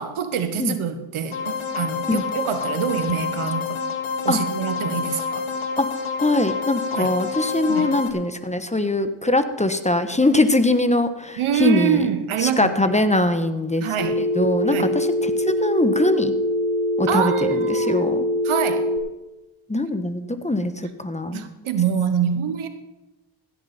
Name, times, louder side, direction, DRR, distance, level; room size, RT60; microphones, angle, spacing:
voice 1, 0.0-3.8 4.2-5.5 6.9-7.2 7.7-7.9 11.4-12.8 13.8-14.2 14.7-15.0 17.1-18.1 18.4-18.9 21.3-22.7, right 8 dB, 80° right, 10 dB, 1.3 m, -25 dB
sound 1, 1.3-8.1, left 5 dB, 75° left, 1.7 m, -28 dB
voice 2, 6.2-12.1 12.4-13.9 14.2-16.3 17.0-18.3 19.7-21.5, left 2 dB, 15° left, 9 dB, 1.2 m, -22 dB
Telephone, 14.0-19.0, equal, 55° left, 1.9 m, -23 dB
16.0 x 9.7 x 4.3 m, 1.0 s
cardioid pair, 60°, 48 cm